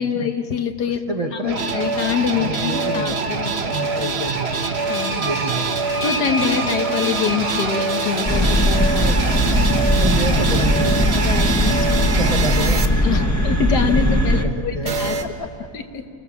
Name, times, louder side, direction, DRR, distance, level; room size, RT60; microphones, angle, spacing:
voice 1, 0.0-1.0 1.3-3.7 4.9-5.3 6.0-9.1 9.3-9.8 11.1-12.1 13.0-15.2 15.7-16.0, left 7 dB, 80° left, 7 dB, 1.9 m, -25 dB
voice 2, 0.8-1.5 2.4-4.5 5.2-5.7 8.8-9.2 9.9-11.2 12.0-13.3 14.2-14.9 15.4-15.5, right 2 dB, 25° right, 5 dB, 1.2 m, -28 dB
sound 1, 1.5-12.9 14.9-15.2, right 4 dB, 45° right, 1.4 m, -24 dB
sound 2, 4.5-8.7, right 1 dB, 70° right, 2.5 m, -31 dB
sound 3, 8.3-14.4, equal, 10° left, 1.1 m, -19 dB
29.0 x 18.5 x 7.2 m, 2.4 s
omnidirectional pair, 1.7 m